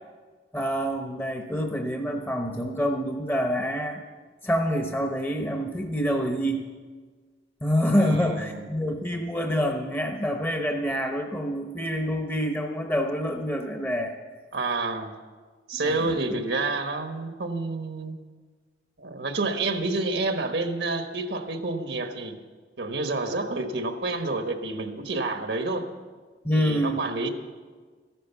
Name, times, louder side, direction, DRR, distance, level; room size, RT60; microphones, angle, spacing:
voice 1, 0.5-4.0 4.4-6.6 7.6-14.1 15.7-16.2 26.4-27.0, equal, 10° left, 3 dB, 0.8 m, -27 dB
voice 2, 8.0-8.7 14.5-15.1 15.7-18.2 19.0-22.3 22.8-25.9 26.5-27.3, right 3 dB, 85° right, 6 dB, 1.3 m, -29 dB
14.0 x 11.5 x 7.1 m, 1.5 s
head